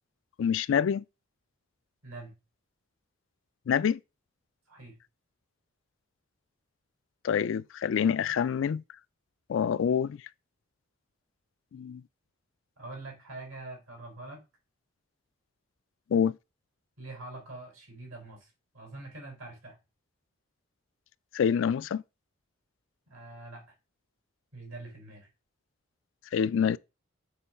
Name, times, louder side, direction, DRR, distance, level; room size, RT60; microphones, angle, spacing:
voice 1, 0.4-1.0 3.7-4.0 7.2-8.8 9.5-10.2 11.7-12.0 16.1-16.4 21.3-22.0 26.3-26.8, left 7 dB, 65° left, 0.3 m, -26 dB
voice 2, 2.0-2.3 4.7-5.0 12.8-14.4 17.0-18.5 18.7-19.8 23.1-23.6 24.5-25.3, right 2 dB, 90° right, 3.4 m, -44 dB
6.7 x 3.1 x 5.4 m
head